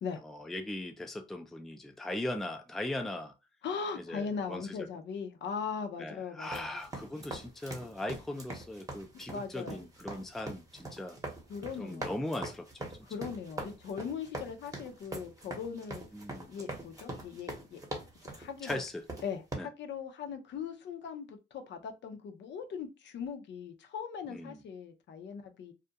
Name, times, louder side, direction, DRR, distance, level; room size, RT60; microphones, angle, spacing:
voice 1, 0.2-3.3 4.0-4.6 6.0-11.2 11.8-12.9 16.1-16.5 18.6-19.0 19.5-19.7 24.3-24.6, left 1 dB, ahead, 0.3 m, -39 dB
voice 2, 3.6-6.8 9.3-9.8 11.5-12.2 13.0-16.0 16.5-17.8 18.2-18.8 19.2-25.7, left 6 dB, 65° left, 0.6 m, -39 dB
sound 1, 6.4-19.5, right 2 dB, 15° right, 0.8 m, -43 dB
2.4 x 2.1 x 2.7 m
cardioid pair, 90°, 20 cm